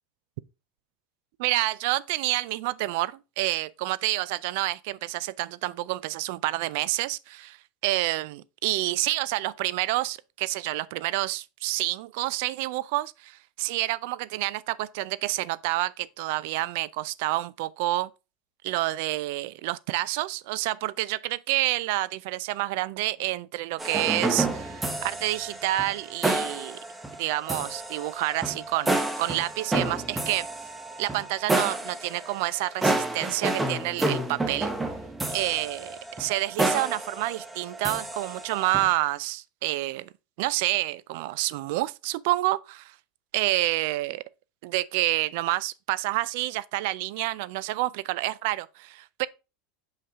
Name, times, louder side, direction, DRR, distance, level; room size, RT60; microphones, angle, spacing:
voice 1, 1.4-7.6 7.8-18.1 18.6-26.8 27.2-30.5 31.0-34.7 35.3-40.1 40.4-42.9 43.3-44.2 44.6-49.3, right 17 dB, 70° right, 0.3 m, -28 dB
sound 1, 23.8-38.9, right 2 dB, 10° right, 1.1 m, -30 dB
5.7 x 5.5 x 3.5 m
supercardioid pair, 115°, 0 cm